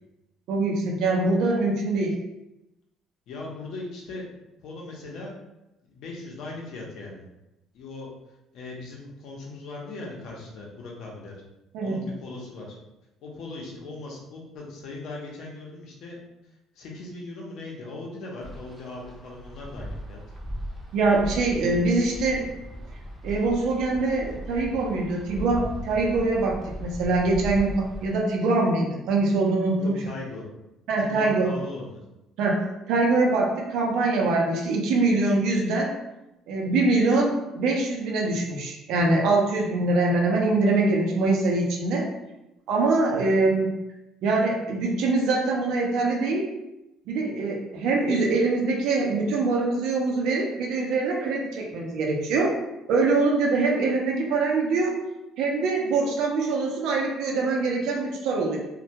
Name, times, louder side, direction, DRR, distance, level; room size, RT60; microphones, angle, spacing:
voice 1, 0.5-2.2 11.7-12.0 20.9-22.5 23.2-29.9 30.9-31.5 32.4-35.9 36.5-42.1 42.7-43.8 44.2-46.5 47.1-52.5 52.9-55.0 55.4-58.6, right 3 dB, 70° right, -1 dB, 0.5 m, -23 dB
voice 2, 3.3-4.3 4.6-5.3 5.8-7.2 7.7-8.1 8.5-11.4 11.8-12.8 13.2-16.2 16.7-20.2 29.8-30.5 31.0-32.0, left 2 dB, 65° left, -2 dB, 0.7 m, -39 dB
Wind, 18.4-28.2, equal, 15° right, 0.5 m, -38 dB
2.2 x 2.1 x 2.7 m, 0.93 s
cardioid pair, 130°, 0 cm